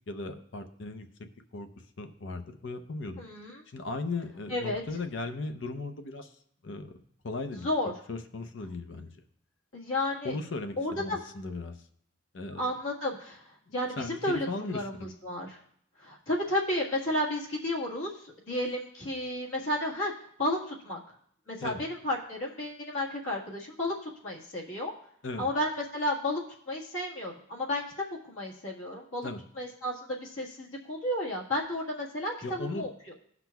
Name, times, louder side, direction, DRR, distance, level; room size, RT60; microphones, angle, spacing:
voice 1, 0.1-1.1 1.5-1.7 2.0-3.2 3.7-6.3 6.6-7.0 7.2-7.7 8.1-9.1 10.2-11.8 12.3-12.7 13.7-15.1 21.6-21.8 25.2-25.5 29.2-29.4 32.4-32.8, left 3 dB, 60° left, 7 dB, 0.6 m, -37 dB
voice 2, 3.2-3.6 4.5-4.8 7.6-7.9 9.7-10.4 10.8-11.2 12.6-15.6 16.0-20.1 20.4-21.0 21.5-24.9 25.4-26.4 26.7-27.8 28.3-29.3 29.6-33.1, left 1 dB, 85° left, -2 dB, 1.7 m, -32 dB
17.5 x 5.9 x 2.3 m, 0.67 s
head